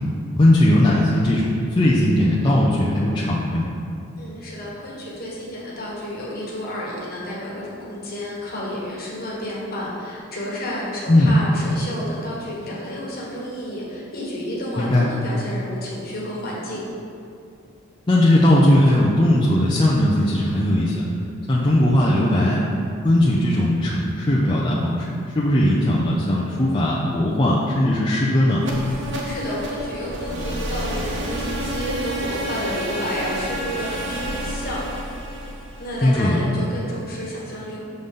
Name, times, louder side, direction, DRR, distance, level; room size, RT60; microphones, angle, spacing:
voice 1, 0.4-3.7 11.1-11.4 14.8-15.1 18.1-21.0 21.5-22.6 23.0-28.6 36.0-36.4, left 1 dB, 20° left, -6 dB, 0.4 m, -18 dB
voice 2, 4.2-16.9 29.2-34.8 35.8-37.9, left 1 dB, 45° left, -5 dB, 1.3 m, -31 dB
sound 1, 28.6-36.5, right 1 dB, 60° right, 0.6 m, -29 dB
6.8 x 3.9 x 3.6 m, 2.5 s
head